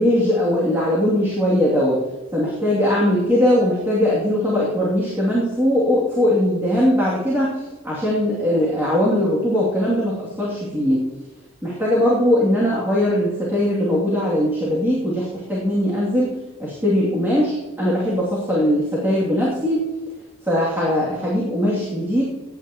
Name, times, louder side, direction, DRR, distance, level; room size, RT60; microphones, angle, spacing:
voice 1, 0.0-2.0 2.3-11.0 11.6-16.3 16.6-19.8 20.4-22.2, left 1 dB, 10° right, -7 dB, 2.8 m, -20 dB
17.5 x 9.6 x 3.1 m, 1.1 s
head